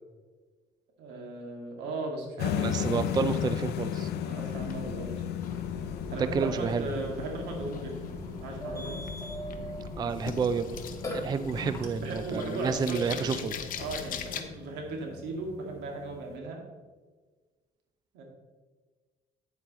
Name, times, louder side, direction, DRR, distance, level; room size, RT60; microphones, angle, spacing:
voice 1, 1.0-3.0 4.2-5.2 6.1-8.1 8.4-9.0 12.0-16.6 18.1-18.2, right 2 dB, 85° right, 1 dB, 2.1 m, -37 dB
sound 1, 2.4-16.4, left 9 dB, 75° left, 0.6 m, -37 dB
voice 2, 2.6-4.1 6.3-6.8 10.0-10.8 11.1-13.5, right 5 dB, 25° right, 12 dB, 0.3 m, -30 dB
sound 2, 4.4-14.4, left 7 dB, 55° left, 0.9 m, -43 dB
Burping eructation, 5.4-11.8, equal, 20° left, 1.7 m, -41 dB
9.1 x 8.0 x 3.1 m, 1.4 s
cardioid pair, 110°, 17 cm